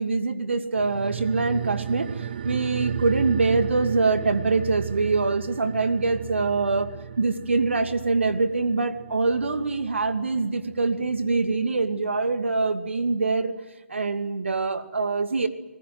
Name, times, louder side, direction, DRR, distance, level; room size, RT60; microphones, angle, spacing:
voice 1, 0.0-2.1 2.4-6.9 7.2-13.5 13.9-15.5, right 3 dB, 65° right, 9 dB, 2.5 m, -24 dB
sound 1, 0.8-11.6 11.9-12.0, right 9 dB, 45° right, 0.7 m, -35 dB
27.5 x 21.0 x 7.8 m, 1.2 s
figure-of-eight pair, 140°, 7 cm